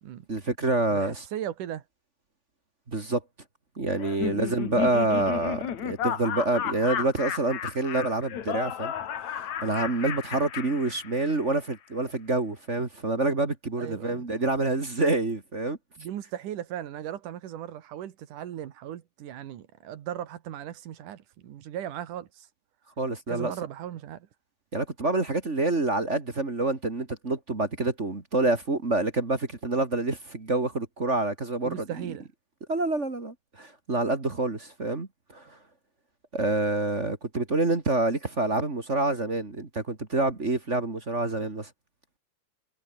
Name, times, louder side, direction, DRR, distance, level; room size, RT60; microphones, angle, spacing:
voice 1, 0.3-1.2 2.9-3.2 3.8-8.9 9.6-15.8 23.0-23.5 24.7-32.1 32.7-35.4 36.3-41.7, right 2 dB, 25° right, 1.6 m, -27 dB
voice 2, 0.9-1.8 4.2-4.4 13.8-14.3 16.0-22.5 23.3-24.3 31.6-32.3, right 11 dB, 60° right, 2.6 m, -37 dB
Laughter, 4.0-11.5, left 9 dB, 50° left, 2.6 m, -33 dB
omnidirectional pair, 4.9 m